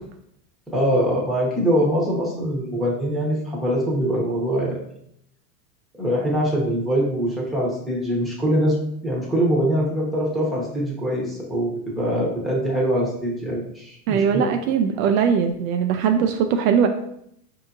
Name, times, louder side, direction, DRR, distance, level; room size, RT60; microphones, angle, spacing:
voice 1, 0.7-4.8 6.0-8.8 9.0-14.5, equal, ahead, -4 dB, 1.0 m, -23 dB
voice 2, 14.1-16.9, right 7 dB, 65° right, 6 dB, 0.5 m, -20 dB
4.9 x 2.8 x 2.5 m, 0.72 s
supercardioid pair, 120°, 47 cm